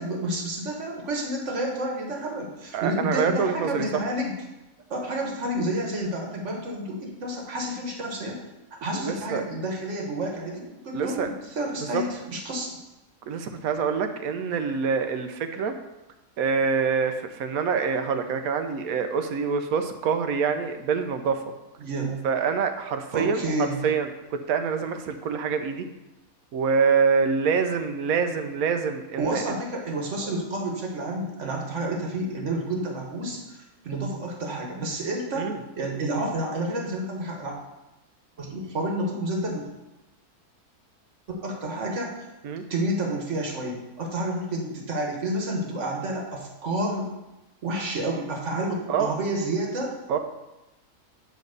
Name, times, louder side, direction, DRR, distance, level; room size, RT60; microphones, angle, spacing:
voice 1, 0.0-4.3 4.9-8.4 8.8-12.8 21.8-22.2 23.1-23.8 29.2-33.6 33.8-37.5 38.4-39.7 41.3-42.3 42.7-47.1 47.6-49.9, right 1 dB, 55° right, 1 dB, 1.6 m, -30 dB
voice 2, 2.7-3.8 8.9-9.4 10.9-11.3 11.8-12.0 13.3-15.7 16.4-21.4 22.2-23.5 23.8-25.9 26.5-29.6 35.3-35.6 42.4-42.6 48.9-49.1 50.1-50.2, right 5 dB, 70° right, 7 dB, 1.1 m, -26 dB
9.2 x 3.2 x 6.5 m, 1.0 s
omnidirectional pair, 1.6 m